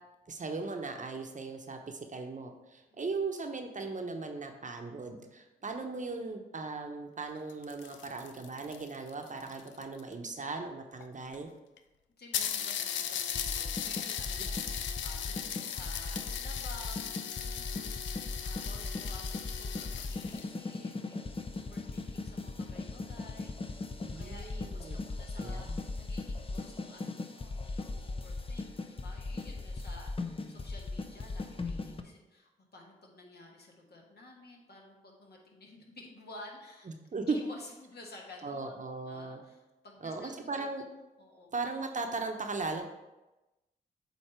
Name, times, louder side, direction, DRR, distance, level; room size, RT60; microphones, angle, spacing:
voice 1, 0.3-11.5 24.0-25.0 25.4-25.8 36.9-37.4 38.4-39.4 40.0-40.8 41.5-42.9, right 3 dB, 40° right, 4 dB, 0.9 m, -38 dB
sound 1, 7.4-10.1 11.0-11.1 11.3-11.4 11.8-11.9 12.3-20.5, left 9 dB, 90° left, 0.4 m, -38 dB
voice 2, 12.2-14.6 15.0-17.9 18.4-36.9 37.3-38.7 39.1-40.7 41.2-41.5, left 2 dB, 60° left, -1 dB, 1.5 m, -52 dB
sound 2, 13.3-32.0, left 3 dB, 30° left, 0.6 m, -39 dB
8.0 x 2.8 x 4.4 m, 1.0 s
supercardioid pair, 50°, 19 cm